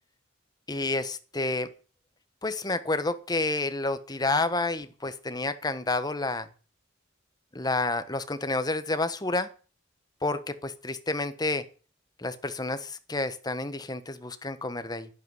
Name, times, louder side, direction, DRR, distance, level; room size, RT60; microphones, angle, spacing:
voice 1, 0.7-1.7 2.4-6.5 7.5-9.5 10.2-11.6 12.2-15.1, left 2 dB, 20° left, 11 dB, 1.3 m, -29 dB
12.5 x 11.0 x 8.1 m, 0.38 s
head